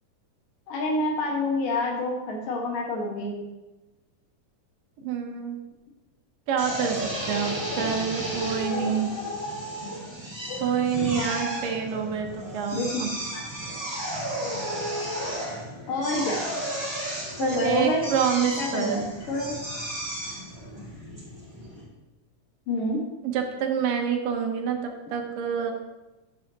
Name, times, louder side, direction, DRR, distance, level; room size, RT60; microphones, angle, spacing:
voice 1, 0.7-3.3 7.7-7.9 8.7-8.8 10.5-10.6 11.0-11.6 12.7-12.9 13.3-13.4 15.9-16.5 17.4-18.0 18.6-19.6 22.7-23.0 25.6-25.7, left 2 dB, 75° left, -1 dB, 3.3 m, -28 dB
voice 2, 5.0-5.6 6.5-7.0 7.3-9.1 10.6-13.1 17.4-19.1 23.2-25.7, right 7 dB, 80° right, 4 dB, 2.7 m, -27 dB
Drill, 6.6-21.8, equal, 10° right, 1.4 m, -33 dB
11.5 x 8.4 x 2.9 m, 1.1 s
omnidirectional pair, 3.9 m